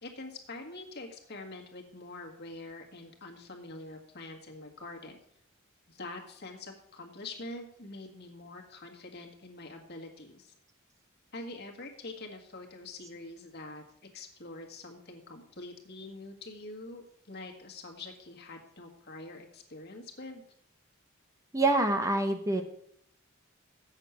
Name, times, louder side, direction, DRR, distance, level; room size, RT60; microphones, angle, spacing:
voice 1, 0.0-5.2 5.9-10.5 11.3-13.8 14.1-20.4, left 2 dB, 50° left, 2 dB, 1.7 m, -45 dB
voice 2, 21.5-22.6, right 2 dB, 15° right, 6 dB, 0.7 m, -26 dB
8.1 x 6.6 x 7.0 m, 0.67 s
head